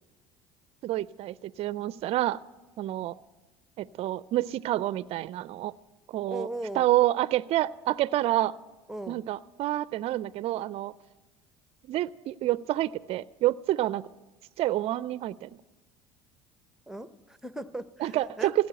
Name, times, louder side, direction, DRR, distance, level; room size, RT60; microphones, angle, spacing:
voice 1, 0.8-2.4 2.8-3.1 3.8-5.7 6.1-6.5 6.7-8.6 9.1-10.9 11.9-14.1 14.6-15.5 18.0-18.7, right 15 dB, 50° right, 19 dB, 0.4 m, -28 dB
voice 2, 6.3-6.8 8.9-9.2 16.9-18.5, right 1 dB, 5° right, 13 dB, 0.8 m, -38 dB
16.0 x 8.4 x 8.8 m, 1.1 s
hypercardioid pair, 70°, 13 cm